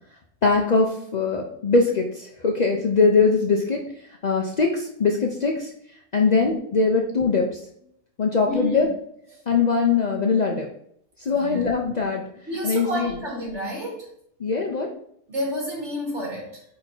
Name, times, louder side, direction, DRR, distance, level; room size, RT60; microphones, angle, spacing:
voice 1, 0.4-3.9 4.2-5.7 6.1-7.6 8.2-8.9 9.5-10.7 11.2-12.2 12.6-13.1 14.4-14.9, left 4 dB, 60° left, 1 dB, 0.4 m, -21 dB
voice 2, 8.4-8.8 9.3-9.4 11.3-11.6 12.5-14.1 15.3-16.6, equal, 50° right, -3 dB, 3.0 m, -30 dB
8.4 x 2.9 x 4.3 m, 0.67 s
omnidirectional pair, 1.6 m